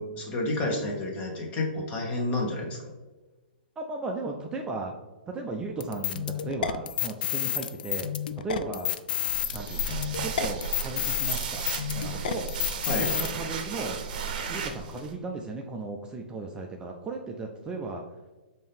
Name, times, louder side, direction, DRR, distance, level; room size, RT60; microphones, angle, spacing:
voice 1, 0.0-2.8 12.9-13.1, left 2 dB, 25° left, 0 dB, 1.2 m, -30 dB
voice 2, 3.8-4.9 5.3-8.9 9.5-11.7 11.9-12.5 13.0-14.0 14.5-18.0, right 3 dB, 15° right, 1 dB, 0.4 m, -36 dB
sound 1, 5.8-13.3, left 10 dB, 60° left, 0.3 m, -30 dB
sound 2, 9.2-15.1, right 5 dB, 50° right, 0.7 m, -34 dB
5.3 x 2.8 x 3.4 m, 1.2 s
hypercardioid pair, 120°, 5 cm